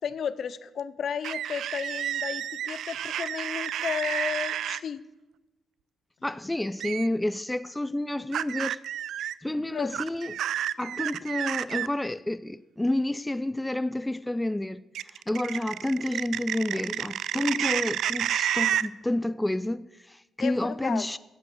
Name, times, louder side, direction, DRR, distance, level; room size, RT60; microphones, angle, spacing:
voice 1, 0.0-5.0 9.6-10.0 16.7-16.8 20.4-21.1, left 7 dB, 60° left, 0.6 m, -33 dB
sound 1, 1.2-4.8 6.8-7.1 8.3-9.3 9.9-11.9 14.9-18.9, right 10 dB, 75° right, 0.3 m, -30 dB
voice 2, 6.2-8.8 9.4-10.3 10.8-14.8 15.1-21.2, left 1 dB, 10° left, 0.3 m, -30 dB
11.0 x 8.3 x 6.1 m
cardioid pair, 90°, 0 cm